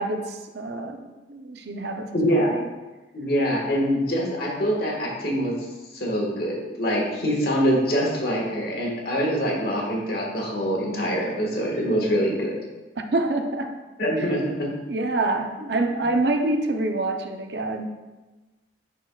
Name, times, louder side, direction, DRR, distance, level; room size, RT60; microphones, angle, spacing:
voice 1, 0.0-2.7 13.1-13.7 14.9-17.9, right 2 dB, 60° right, 5 dB, 0.6 m, -26 dB
voice 2, 2.1-2.5 3.1-5.5 5.9-12.5 14.0-14.7, equal, 55° left, -2 dB, 1.5 m, -24 dB
10.0 x 4.5 x 2.3 m, 1.2 s
head